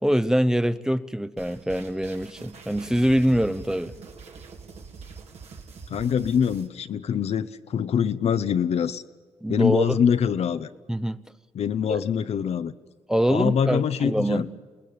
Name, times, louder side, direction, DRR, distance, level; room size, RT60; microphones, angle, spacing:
voice 1, 0.0-3.9 9.4-10.0 10.9-11.2 11.9-12.0 13.1-14.5, equal, 5° right, 1.0 m, -24 dB
sound 1, 1.4-6.7, right 5 dB, 65° right, 3.3 m, -44 dB
voice 2, 5.9-9.0 9.5-10.7 11.5-12.7 13.3-14.5, left 8 dB, 65° left, 1.0 m, -24 dB
28.5 x 19.0 x 8.8 m
supercardioid pair, 60°, 12 cm